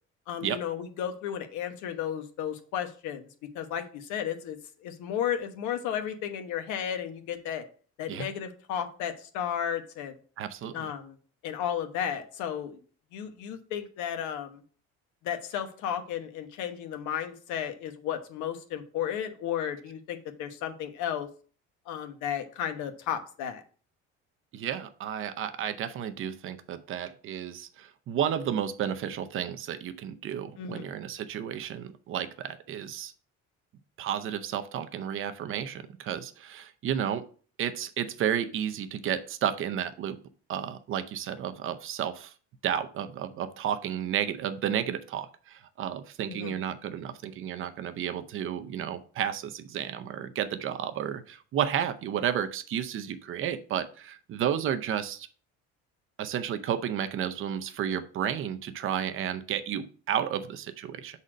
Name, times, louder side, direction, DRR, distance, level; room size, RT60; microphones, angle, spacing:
voice 1, 0.3-3.2 3.5-7.6 8.0-10.1 10.7-11.2 11.4-12.8 13.1-14.6 15.2-21.3 21.9-23.6 30.6-30.9 46.3-46.5, left 9 dB, 80° left, 8 dB, 1.1 m, -33 dB
voice 2, 10.4-10.9 24.5-33.1 34.0-37.3 37.6-40.2 40.5-42.3 42.6-55.3 56.2-61.2, right 9 dB, 45° right, 10 dB, 0.6 m, -32 dB
6.3 x 4.1 x 5.0 m, 0.41 s
cardioid pair, 150°, 29 cm